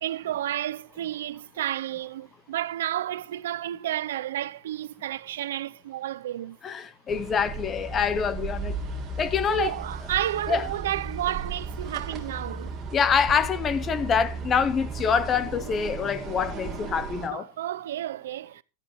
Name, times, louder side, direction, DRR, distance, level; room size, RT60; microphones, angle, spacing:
voice 1, 0.0-6.6 9.5-12.8 17.3-18.6, right 12 dB, 90° right, 0.6 m, -31 dB
voice 2, 6.6-8.8 9.2-9.7 10.5-10.7 12.9-17.5, left 6 dB, 20° left, 0.7 m, -25 dB
sound 1, 7.1-17.3, right 4 dB, 15° right, 2.8 m, -35 dB
17.0 x 12.0 x 3.1 m
supercardioid pair, 160°, 0 cm